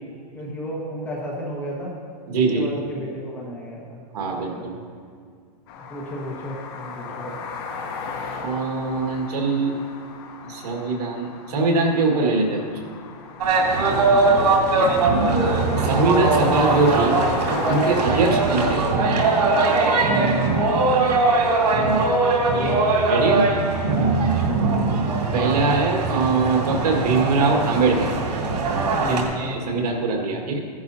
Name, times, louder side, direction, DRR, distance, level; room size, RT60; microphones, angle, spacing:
voice 1, 0.3-2.0 2.3-4.0 4.3-4.7 5.9-7.3 13.9-14.4 18.2-18.4 20.2-20.6 20.9-21.0 22.4-22.9 24.0-24.2 24.4-24.8 29.0-29.5, equal, 10° left, -3 dB, 1.5 m, -34 dB
voice 2, 2.3-2.7 4.1-4.8 8.4-9.8 10.4-12.8 14.7-14.9 15.7-17.2 17.7-18.8 22.7-23.5 25.3-28.1 29.1-30.6, right 3 dB, 70° right, 1 dB, 1.9 m, -22 dB
sound 1, 5.7-18.8, left 4 dB, 35° left, 1.1 m, -35 dB
sound 2, 13.4-29.2, right 3 dB, 85° right, 2.5 m, -21 dB
14.5 x 11.0 x 2.8 m, 2.2 s
supercardioid pair, 165°, 21 cm